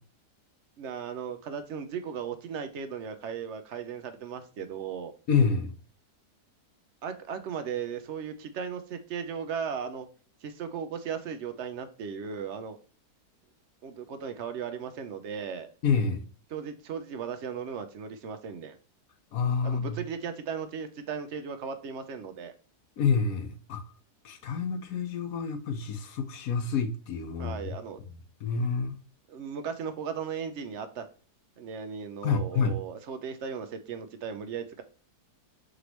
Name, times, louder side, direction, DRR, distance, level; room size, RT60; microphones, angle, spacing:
voice 1, 0.8-5.1 7.0-10.1 10.4-12.8 13.8-15.7 16.5-18.7 19.6-22.5 27.4-28.0 29.3-31.0 31.6-34.8, right 7 dB, 65° right, 0.7 m, -36 dB
voice 2, 5.3-5.7 15.8-16.2 19.3-20.0 23.0-23.8 24.2-27.7 28.1-28.9 32.2-32.8, left 5 dB, 65° left, 1.1 m, -28 dB
5.1 x 3.3 x 2.8 m
omnidirectional pair, 1.7 m